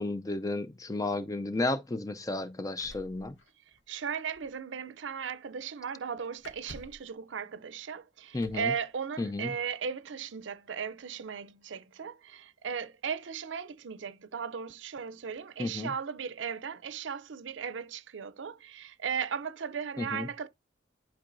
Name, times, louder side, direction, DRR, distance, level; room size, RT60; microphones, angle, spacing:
voice 1, 0.0-3.4 8.3-8.7 9.2-9.5 15.6-15.9 20.0-20.3, left 2 dB, 20° left, 0.5 m, -32 dB
sound 1, 2.8-4.1 4.3-4.6 6.4-7.1 8.4-8.8 9.9-10.0 10.4-10.9, left 1 dB, 85° left, 1.2 m, -51 dB
voice 2, 3.9-20.5, right 6 dB, 80° right, 0.5 m, -37 dB
11.5 x 4.5 x 2.6 m
head